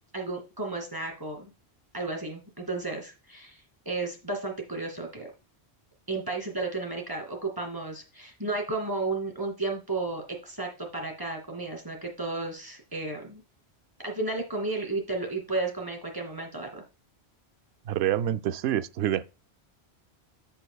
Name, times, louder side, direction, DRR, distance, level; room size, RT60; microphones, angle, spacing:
voice 1, 0.1-1.5 1.9-5.3 6.1-13.4 14.0-16.8, right 3 dB, 20° right, 2.5 m, -33 dB
voice 2, 17.9-19.2, right 11 dB, 75° right, 0.8 m, -27 dB
14.0 x 5.4 x 2.3 m
omnidirectional pair, 1.1 m